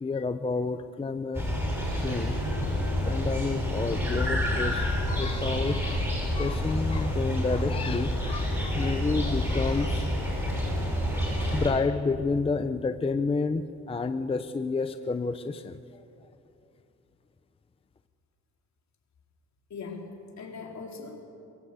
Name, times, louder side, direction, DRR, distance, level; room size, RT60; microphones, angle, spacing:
voice 1, 0.0-1.5 1.9-2.4 3.0-10.6 11.0-15.8, left 4 dB, 20° left, 9 dB, 0.5 m, -30 dB
sound 1, 1.3-11.7, equal, 10° right, 6.2 m, -28 dB
voice 2, 19.7-21.2, left 4 dB, 65° left, 1 dB, 3.6 m, -40 dB
24.0 x 19.5 x 8.1 m, 2.7 s
wide cardioid pair, 165°, 30 cm